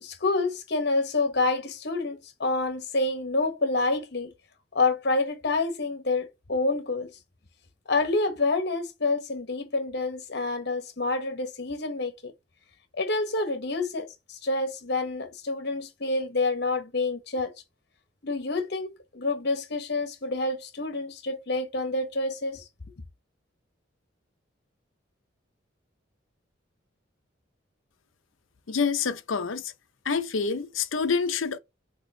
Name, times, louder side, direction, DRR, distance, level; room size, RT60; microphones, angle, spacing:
voice 1, 0.0-4.3 4.7-7.1 7.9-12.3 12.9-17.5 18.2-22.6, left 3 dB, 55° left, 1.0 m, -28 dB
voice 2, 28.7-29.6 30.1-31.6, left 5 dB, 90° left, 0.6 m, -27 dB
6.3 x 2.9 x 2.8 m
head